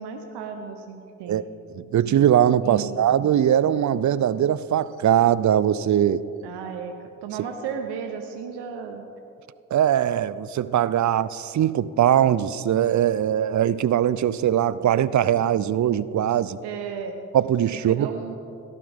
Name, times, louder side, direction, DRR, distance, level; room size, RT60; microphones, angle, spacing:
voice 1, 0.0-1.4 2.6-3.0 6.4-9.0 16.6-17.2 17.9-18.4, right 6 dB, 80° right, 5 dB, 0.9 m, -34 dB
voice 2, 1.8-6.2 9.7-16.6 17.3-18.1, right 10 dB, 45° right, 17 dB, 0.5 m, -21 dB
18.5 x 11.5 x 3.6 m, 2.6 s
hypercardioid pair, 40°, 40 cm